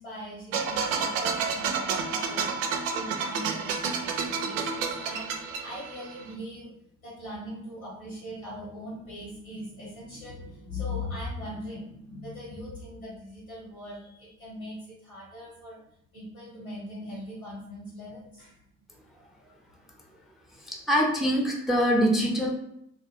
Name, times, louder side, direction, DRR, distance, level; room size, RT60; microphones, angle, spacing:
voice 1, 0.0-15.8 16.1-18.6, left 1 dB, 90° left, -6 dB, 1.2 m, -40 dB
sound 1, 0.5-6.3, right 5 dB, 70° right, 0.5 m, -30 dB
voice 2, 20.7-22.5, equal, ahead, 1 dB, 0.5 m, -24 dB
2.3 x 2.2 x 3.1 m, 0.76 s
figure-of-eight pair, 45°, 41 cm